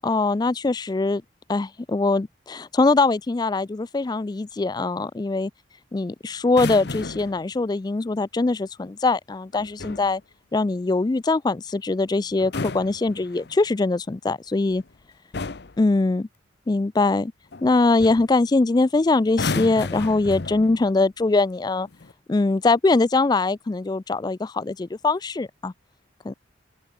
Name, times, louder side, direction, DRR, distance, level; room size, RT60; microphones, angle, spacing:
voice 1, 0.0-1.2 1.5-5.5 5.9-10.2 10.5-14.8 15.8-16.3 16.7-17.3 17.6-21.9 22.3-25.7 26.3-26.4, left 3 dB, 20° left, 0.3 m, -22 dB
sound 1, 6.4-7.4 9.5-10.1 12.3-13.7 14.7-14.9 15.3-15.8 17.5-17.7 18.0-18.3 19.3-20.9 21.9-22.1, left 3 dB, 55° left, 0.9 m, -32 dB
open air
head